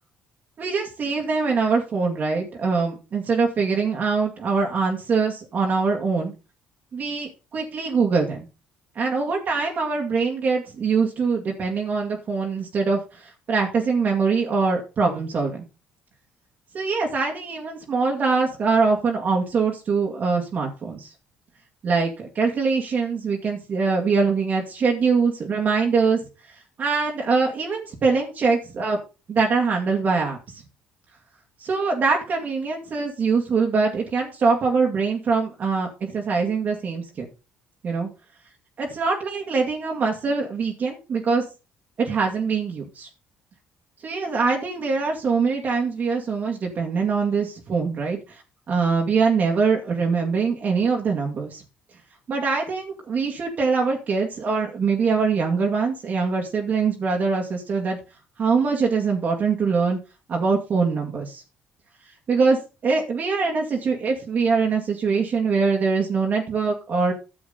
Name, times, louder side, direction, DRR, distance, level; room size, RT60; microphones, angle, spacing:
voice 1, 0.6-6.3 6.9-8.5 9.0-15.6 16.7-21.1 21.8-26.2 26.8-29.0 29.3-30.4 31.6-37.2 37.8-38.1 38.8-41.4 42.0-43.1 44.0-48.4 48.7-51.6 52.3-58.0 58.4-60.0 60.3-61.4 62.3-62.6 62.8-67.1, right 4 dB, 50° right, 0 dB, 2.1 m, -23 dB
10.5 x 7.0 x 4.1 m, 0.30 s
supercardioid pair, 70°, 4 cm